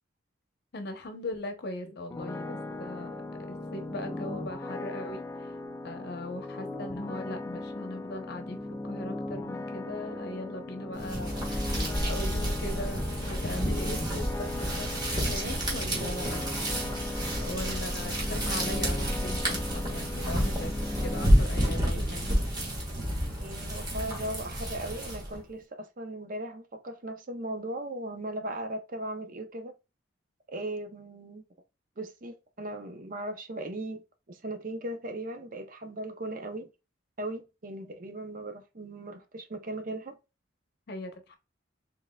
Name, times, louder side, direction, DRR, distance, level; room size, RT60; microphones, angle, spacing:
voice 1, 0.7-3.2 3.5-5.5 5.8-16.7 17.4-22.3 40.9-41.4, left 1 dB, 55° left, 0.8 m, -39 dB
sound 1, 2.1-21.3, left 2 dB, 15° left, 0.3 m, -38 dB
sound 2, 10.9-25.4, equal, 20° right, 1.4 m, -30 dB
voice 2, 23.4-29.7 30.5-31.4 32.0-36.7 37.2-40.1, right 1 dB, 45° right, 0.6 m, -38 dB
4.4 x 3.5 x 2.2 m
head